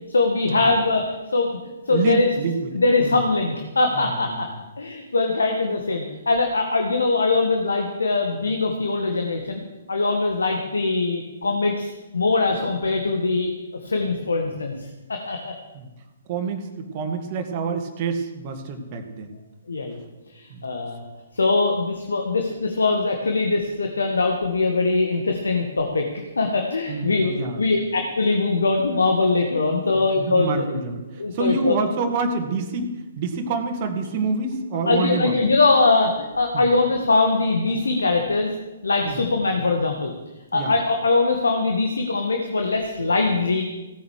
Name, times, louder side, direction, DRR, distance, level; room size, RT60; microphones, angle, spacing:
voice 1, 0.1-1.1 1.3-1.5 1.9-2.3 2.7-4.5 4.8-9.6 9.9-13.5 13.8-15.5 19.7-20.0 20.3-21.0 21.3-26.1 26.4-30.6 31.2-31.8 34.9-38.5 38.8-40.1 40.5-43.6, left 3 dB, 70° left, 3 dB, 1.8 m, -22 dB
voice 2, 1.9-3.2 3.9-4.6 15.7-15.9 16.3-19.4 20.5-20.6 26.9-27.6 29.9-35.5 36.5-36.7 39.0-39.2 40.5-40.7, right 4 dB, 35° right, 3 dB, 2.1 m, -27 dB
17.0 x 9.6 x 6.6 m, 1.1 s
figure-of-eight pair, 125°, 0 cm